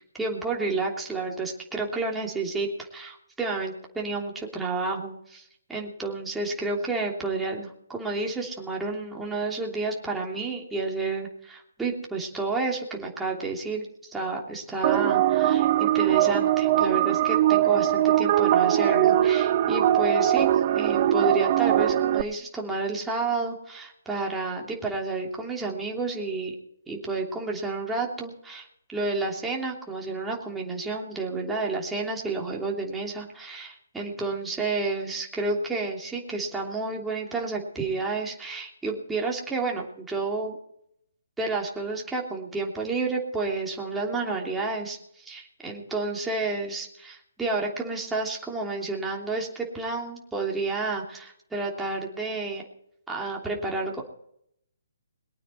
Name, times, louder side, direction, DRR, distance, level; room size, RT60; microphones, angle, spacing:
voice 1, 0.2-5.4 5.7-20.5 20.7-26.5 26.9-40.6 41.4-52.6 53.1-54.0, right 3 dB, 5° right, -2 dB, 3.0 m, -30 dB
sound 1, 14.8-22.2, right 12 dB, 40° right, 0.8 m, -21 dB
22.5 x 9.1 x 4.5 m, 0.71 s
figure-of-eight pair, 140°, 0 cm